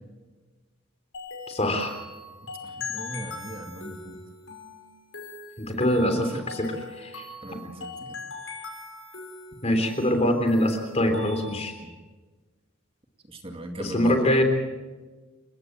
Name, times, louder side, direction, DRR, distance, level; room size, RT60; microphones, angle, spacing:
sound 1, 1.1-11.8, left 4 dB, 70° left, 5.9 m, -41 dB
voice 1, 1.5-1.9 5.7-6.7 7.0-7.2 9.6-11.7 13.8-14.4, left 1 dB, 30° left, 6 dB, 3.5 m, -24 dB
voice 2, 2.6-4.2 5.9-6.5 7.4-8.2 11.8-12.0 13.3-14.3, right 1 dB, 30° right, 4 dB, 2.3 m, -38 dB
29.0 x 16.5 x 7.7 m, 1.3 s
head